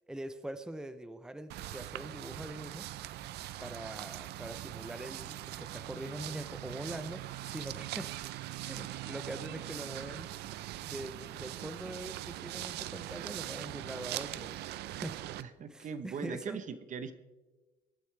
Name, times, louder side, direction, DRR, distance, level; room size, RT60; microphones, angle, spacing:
voice 1, 0.1-2.9 3.6-8.1 8.6-10.3 10.8-14.5 15.0-15.2 15.7-16.6, right 1 dB, 5° right, 10 dB, 0.8 m, -43 dB
sound 1, 1.5-15.4, right 14 dB, 80° right, 0.6 m, -41 dB
voice 2, 15.4-17.1, right 6 dB, 50° right, 11 dB, 1.0 m, -40 dB
24.5 x 9.2 x 3.4 m, 1.2 s
cardioid pair, 110°, 17 cm